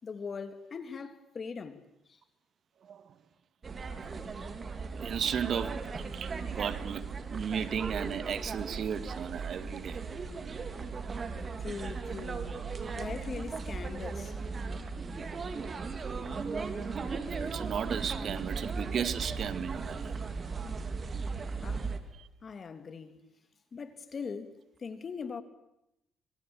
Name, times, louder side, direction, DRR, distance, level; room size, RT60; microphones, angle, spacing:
voice 1, 0.0-1.8 2.1-2.2 11.6-12.5 12.9-14.4 21.6-21.9 22.4-23.2 23.7-25.4, left 5 dB, 40° left, 3.1 m, -41 dB
voice 2, 2.8-3.1 4.9-5.8 6.1-10.0 17.4-20.1 22.1-22.3, right 8 dB, 60° right, 1.9 m, -35 dB
sound 1, 3.6-22.0, right 4 dB, 40° right, 3.6 m, -37 dB
26.5 x 24.5 x 8.9 m
cardioid pair, 90°, 0 cm